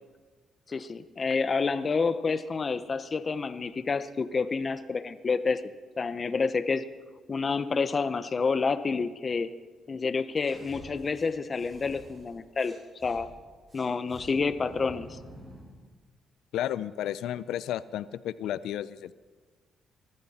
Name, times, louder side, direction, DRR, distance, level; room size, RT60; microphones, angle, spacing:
voice 1, 0.7-5.7 6.0-6.8 7.3-9.5 9.9-13.3 13.7-15.2, left 4 dB, 35° left, 12 dB, 0.8 m, -29 dB
sound 1, 10.4-13.2 13.7-15.8, right 1 dB, 30° right, 5.3 m, -49 dB
voice 2, 16.5-19.1, left 11 dB, 85° left, 16 dB, 0.5 m, -32 dB
20.5 x 13.5 x 4.3 m, 1.4 s
cardioid pair, 90°, 0 cm